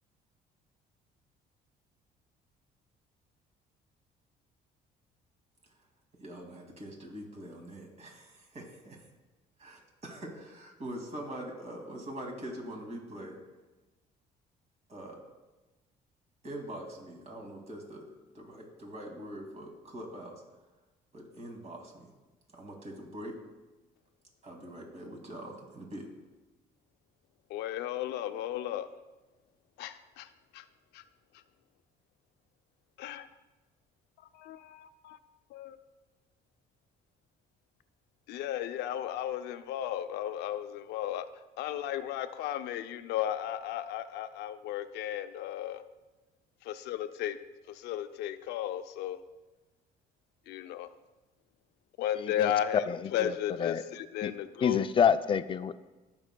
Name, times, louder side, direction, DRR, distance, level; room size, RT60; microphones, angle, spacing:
voice 1, 6.2-9.0 9.6-13.4 14.9-15.2 16.4-18.0 18.3-20.4 21.1-22.1 22.5-23.3 24.4-26.0, right 1 dB, 40° right, 0 dB, 2.3 m, -43 dB
voice 2, 27.5-28.9 29.8-30.6 30.9-31.0 31.3-31.4 33.0-33.3 34.2-35.2 35.5-35.8 38.3-41.3 41.6-45.8 46.6-47.4 47.7-49.2 50.5-50.9 52.0-54.8, left 11 dB, 85° left, 10 dB, 0.5 m, -34 dB
voice 3, 52.2-52.5 52.9-53.8 54.2-54.3 54.6-55.8, left 7 dB, 30° left, 12 dB, 0.4 m, -28 dB
17.0 x 6.2 x 2.3 m, 1.1 s
cardioid pair, 110°, 17 cm